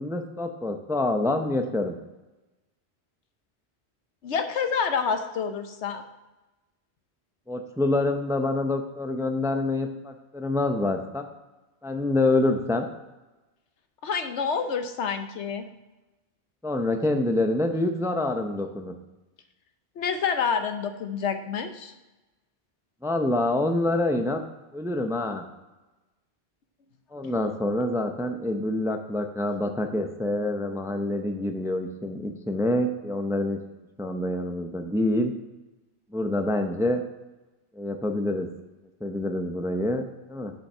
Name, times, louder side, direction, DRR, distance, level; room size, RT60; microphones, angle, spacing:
voice 1, 0.0-1.9 7.5-11.2 11.8-12.9 16.6-18.9 23.0-24.4 24.7-25.5 27.1-33.6 34.0-35.3 36.1-37.0 37.8-38.5 39.0-40.5, left 2 dB, 5° right, 5 dB, 0.5 m, -26 dB
voice 2, 4.2-6.0 14.0-15.7 20.0-21.9, left 6 dB, 90° left, 8 dB, 1.1 m, -28 dB
7.3 x 5.6 x 5.5 m, 1.1 s
omnidirectional pair, 1.1 m